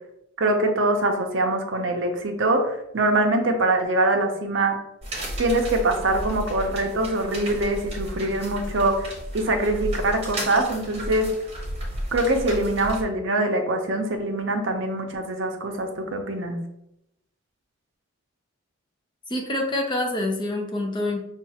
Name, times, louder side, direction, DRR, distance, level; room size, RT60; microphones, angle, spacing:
voice 1, 0.4-4.8 5.4-9.1 9.3-11.3 12.1-16.6, right 2 dB, 55° right, 4 dB, 0.6 m, -23 dB
sound 1, 5.0-13.0, equal, 30° right, 1.0 m, -33 dB
voice 2, 19.3-21.2, left 1 dB, 20° left, 2 dB, 0.5 m, -26 dB
5.6 x 2.4 x 2.7 m, 0.81 s
head